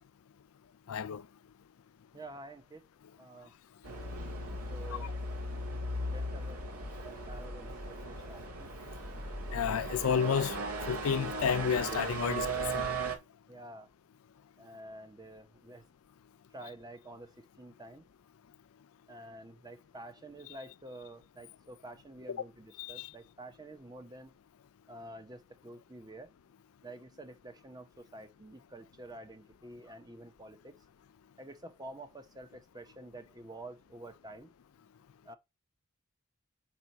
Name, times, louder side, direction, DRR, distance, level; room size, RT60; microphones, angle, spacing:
voice 1, 0.9-1.2 9.5-10.6 10.9-12.5 12.7-12.9 22.3-22.4 22.8-23.1, left 7 dB, 70° left, 0.4 m, -31 dB
voice 2, 2.1-2.8 3.2-3.5 4.7-5.1 6.1-6.6 6.9-8.7 13.5-13.9 14.6-15.8 16.5-18.1 19.1-24.3 24.9-26.3 26.8-30.7 31.4-34.5 35.2-35.4, right 1 dB, 15° right, 0.9 m, -49 dB
sound 1, 3.8-13.2, right 2 dB, 90° right, 1.9 m, -37 dB
5.5 x 4.5 x 5.4 m
head